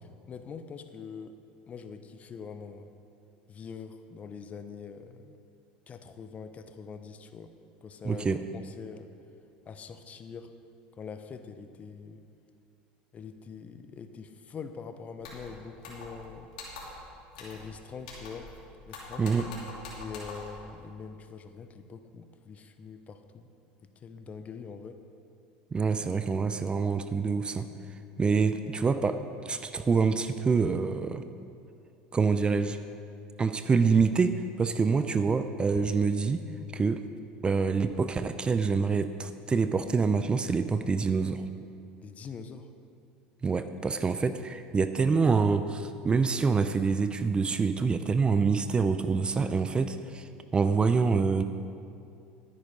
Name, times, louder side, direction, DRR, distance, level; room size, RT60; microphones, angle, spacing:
voice 1, 0.0-1.4 1.7-3.0 3.5-5.4 5.9-7.5 7.8-8.3 8.5-9.1 9.7-10.5 10.9-12.2 13.1-16.5 17.4-18.5 18.9-19.3 20.0-23.5 23.8-25.0 42.0-42.7, left 5 dB, 35° left, 9 dB, 0.8 m, -44 dB
voice 2, 8.0-8.4 19.2-19.5 25.7-27.7 28.2-29.2 29.5-31.2 32.1-32.8 33.4-36.5 36.7-37.0 37.4-41.4 43.4-51.4, right 5 dB, 20° right, 10 dB, 0.5 m, -26 dB
sound 1, 15.2-15.5 15.8-16.3 16.5-17.0 17.3-17.7 18.0-18.6 18.9-20.6, left 3 dB, 85° left, 3.0 m, -43 dB
12.0 x 9.7 x 5.1 m, 2.5 s
supercardioid pair, 100°, 4 cm